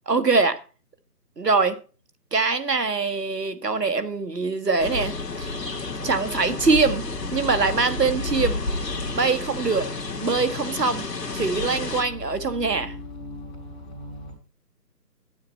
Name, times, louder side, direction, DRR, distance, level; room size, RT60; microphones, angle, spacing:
voice 1, 0.1-0.6 1.4-1.8 2.3-5.1 5.4-5.5 6.0-7.1 7.3-8.6 9.1-9.9 10.2-11.0 11.3-12.9, right 4 dB, 75° right, 10 dB, 1.5 m, -23 dB
sound 1, 4.8-12.0, left 3 dB, 75° left, 1.7 m, -31 dB
sound 2, 5.4-14.3, left 1 dB, 15° left, 2.8 m, -38 dB
9.7 x 9.3 x 4.4 m, 0.36 s
figure-of-eight pair, 165°, 49 cm